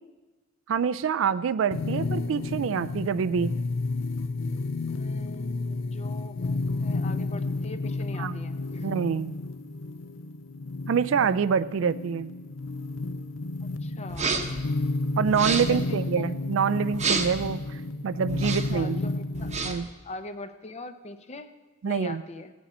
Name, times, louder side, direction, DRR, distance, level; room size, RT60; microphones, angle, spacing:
voice 1, 0.7-3.6 8.2-8.4 8.8-9.3 10.9-12.3 15.2-19.0 19.6-19.9 21.8-22.2, right 6 dB, 70° right, 14 dB, 0.4 m, -26 dB
sound 1, 1.7-19.7, left 3 dB, 75° left, 0.5 m, -31 dB
voice 2, 4.9-8.9 13.6-14.3 15.7-16.0 18.4-21.5 21.8-22.5, left 2 dB, 35° left, 9 dB, 0.7 m, -42 dB
sound 2, 14.1-14.6 15.3-15.8 16.9-17.5 18.3-18.8 19.3-19.9, right 4 dB, 35° right, 0.8 m, -29 dB
17.0 x 8.4 x 4.3 m, 1.2 s
head